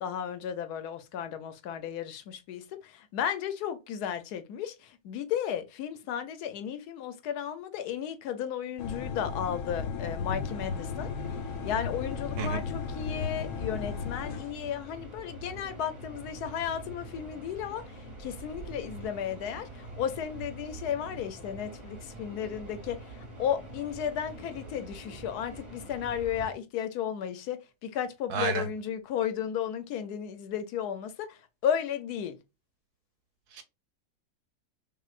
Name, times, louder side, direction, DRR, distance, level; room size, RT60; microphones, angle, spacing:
voice 1, 0.0-11.1 11.6-32.4, left 9 dB, 80° left, 1.2 m, -34 dB
sound 1, 8.8-14.5, left 6 dB, 65° left, 0.9 m, -35 dB
sound 2, 10.4-26.5, right 2 dB, 20° right, 2.7 m, -45 dB
voice 2, 28.3-28.6 33.5-33.6, right 5 dB, 80° right, 1.4 m, -30 dB
5.7 x 2.6 x 2.4 m
omnidirectional pair, 1.7 m